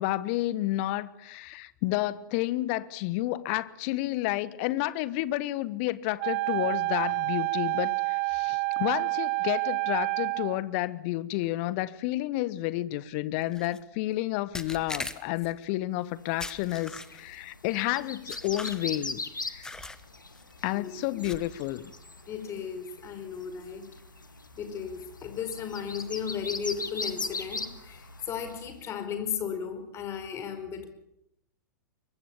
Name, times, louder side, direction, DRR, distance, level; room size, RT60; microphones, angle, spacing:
voice 1, 0.0-19.2 19.5-19.7 20.6-21.9, left 16 dB, 40° left, 17 dB, 1.4 m, -30 dB
Wind instrument woodwind instrument, 6.2-10.6, right 25 dB, 40° right, 1.6 m, -29 dB
sound 1, 13.5-13.8 14.5-15.5 16.4-17.4 18.3-19.1 19.6-20.0 20.4-20.6 21.2-21.7, left 2 dB, 5° left, 1.5 m, -40 dB
sound 2, 16.3-28.8, left 3 dB, 80° left, 2.1 m, -40 dB
voice 2, 20.7-21.2 22.3-23.9 24.6-30.9, left 7 dB, 25° left, 9 dB, 5.0 m, -35 dB
24.5 x 23.5 x 7.2 m, 0.79 s
figure-of-eight pair, 105°, 10 cm